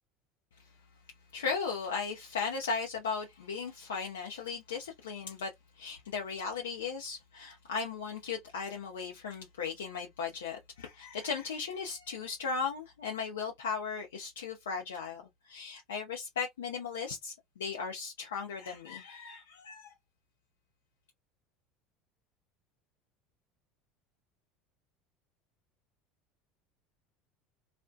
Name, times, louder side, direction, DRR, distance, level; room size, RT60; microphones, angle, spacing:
voice 1, 1.3-5.5 5.8-19.9, left 5 dB, 80° left, 0.5 m, -37 dB
2.5 x 2.1 x 2.4 m
hypercardioid pair, 70°, 0 cm